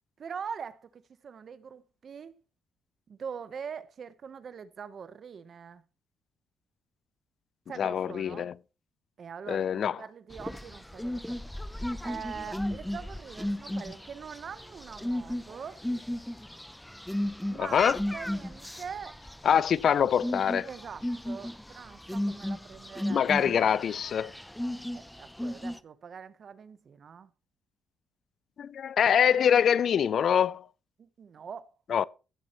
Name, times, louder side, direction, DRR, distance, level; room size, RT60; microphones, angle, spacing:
voice 1, 0.2-2.4 3.1-5.8 7.7-8.5 9.2-11.4 12.0-15.9 17.5-19.2 19.5-19.6 20.6-23.6 24.9-27.3 31.0-31.7, right 6 dB, 50° right, 0.9 m, -43 dB
voice 2, 7.8-8.5 9.5-10.0 17.6-18.0 19.4-20.7 23.1-24.3 28.6-30.6 31.9-32.0, left 8 dB, 60° left, 0.4 m, -24 dB
sound 1, 10.3-25.8, left 1 dB, 5° left, 0.6 m, -35 dB
16.0 x 8.7 x 3.0 m
cardioid pair, 90°, 0 cm